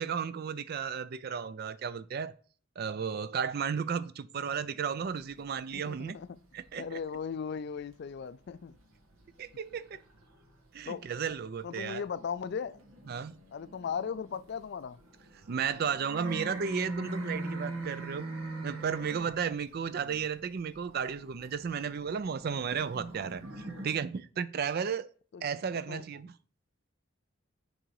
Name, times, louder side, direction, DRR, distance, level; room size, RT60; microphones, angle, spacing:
voice 1, 0.0-2.3 2.8-6.2 6.5-7.0 9.4-10.0 10.7-12.0 13.1-13.3 15.5-18.3 18.6-25.1 25.4-26.3, right 6 dB, 45° right, 0.4 m, -34 dB
sound 1, 5.0-7.9 8.2-10.7 11.2-23.9, right 1 dB, 75° right, 1.5 m, -43 dB
voice 2, 5.7-6.4 6.7-8.8 10.9-11.1 11.6-12.8 13.1-13.2 13.5-15.0 19.9-20.2 25.3-25.4 25.7-26.0, left 6 dB, 50° left, 0.3 m, -38 dB
6.3 x 4.0 x 4.7 m
head